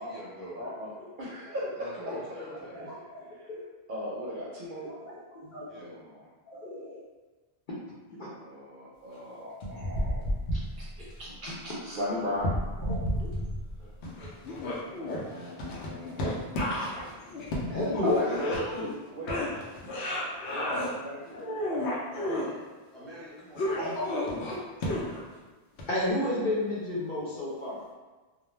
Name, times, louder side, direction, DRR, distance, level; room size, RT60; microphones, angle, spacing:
voice 1, 0.0-0.6 1.6-2.8 5.7-5.9 13.8-13.9 20.3-20.9 22.1-22.6 22.9-23.8, equal, ahead, -10 dB, 0.9 m, -45 dB
voice 2, 0.6-2.0 3.3-3.5 3.9-4.9 5.7-6.3 8.4-10.9 11.2-12.6 15.0-16.4 18.0-19.4 20.5-21.4, equal, 60° right, -6 dB, 0.6 m, -37 dB
voice 3, 2.7-3.6 4.8-5.6 6.5-7.0 8.1-8.3 11.0-11.1 13.2-13.3 17.7-18.2 20.1-20.2 21.3-22.2 23.8-24.5 25.9-27.8, left 1 dB, 55° left, -7 dB, 0.7 m, -33 dB
sound 1, 9.6-11.1 12.3-13.8 14.0-19.0 19.3-20.9 21.3-22.5 23.6-25.3 25.8-25.9, left 1 dB, 85° left, 0.9 m, -32 dB
2.3 x 2.1 x 3.0 m, 1.3 s
omnidirectional pair, 1.1 m